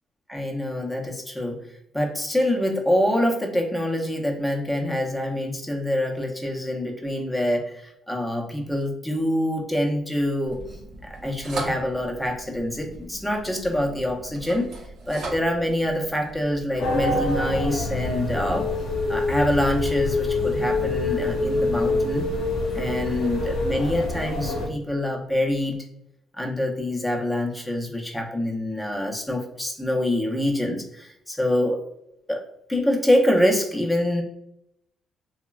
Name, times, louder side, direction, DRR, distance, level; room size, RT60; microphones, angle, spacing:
voice 1, 0.3-1.6 1.9-10.6 11.0-14.7 15.1-18.7 19.1-22.3 22.7-25.8 26.4-31.8 32.3-32.4 32.7-34.2, left 1 dB, 5° left, 0 dB, 0.6 m, -25 dB
sound 1, 10.5-17.8, right 3 dB, 75° right, 0.6 m, -39 dB
sound 2, 16.8-24.7, left 2 dB, 85° left, 0.7 m, -25 dB
3.0 x 2.1 x 2.3 m, 0.79 s
cardioid pair, 90°, 0 cm